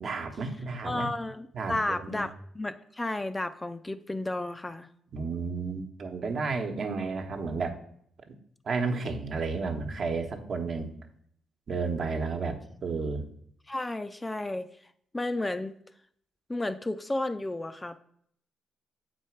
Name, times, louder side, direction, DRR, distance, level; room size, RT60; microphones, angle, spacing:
voice 1, 0.0-1.1 1.5-2.2 5.1-7.8 8.3-8.4 8.6-10.9 11.7-13.2, right 4 dB, 55° right, 5 dB, 1.1 m, -32 dB
voice 2, 0.8-4.9 13.7-14.7 15.1-15.7 16.5-18.0, left 2 dB, 15° left, 9 dB, 0.4 m, -32 dB
7.5 x 4.6 x 4.6 m, 0.68 s
cardioid pair, 85°, 0 cm